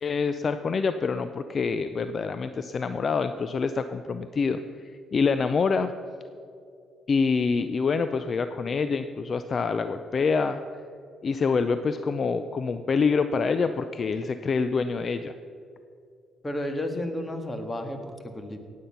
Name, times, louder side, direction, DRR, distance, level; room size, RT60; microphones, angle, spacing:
voice 1, 0.0-4.6 5.1-5.9 7.1-10.6 11.2-15.3, left 5 dB, 45° left, 10 dB, 0.5 m, -26 dB
voice 2, 16.4-18.6, left 1 dB, 15° left, 6 dB, 1.7 m, -32 dB
17.5 x 8.5 x 5.8 m, 2.4 s
cardioid pair, 90°, 0 cm